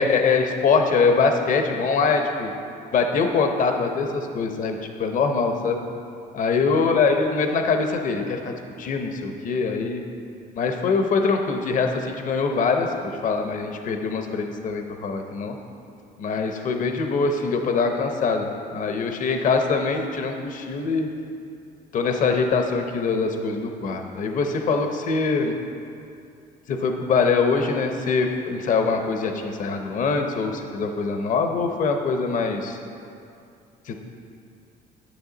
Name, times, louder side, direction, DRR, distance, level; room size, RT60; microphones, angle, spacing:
voice 1, 0.0-2.5 2.9-5.8 6.3-8.5 8.8-10.0 10.5-15.6 16.2-21.1 21.9-25.6 26.7-32.8 33.9-34.0, left 4 dB, 50° left, 5 dB, 0.7 m, -23 dB
10.0 x 6.3 x 3.9 m, 2.5 s
cardioid pair, 110°, 17 cm